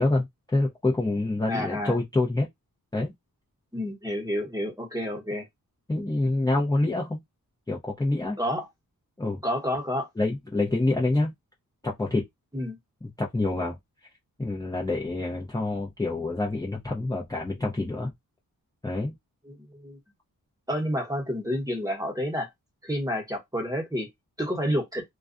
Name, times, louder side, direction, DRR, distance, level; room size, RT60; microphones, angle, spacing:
voice 1, 0.0-2.5 2.9-3.1 5.9-7.2 7.7-8.4 9.2-9.4 10.2-11.3 11.8-12.3 13.0-13.8 14.4-18.1 18.8-19.1, left 2 dB, 10° left, 0.7 m, -27 dB
voice 2, 1.5-2.0 3.7-5.5 5.9-6.1 8.4-8.7 9.4-10.1 12.5-12.8 19.5-20.0 20.7-22.5 22.8-24.1 24.4-25.0, equal, 10° right, 1.1 m, -29 dB
2.3 x 2.3 x 2.5 m
cardioid pair, 80°, 35 cm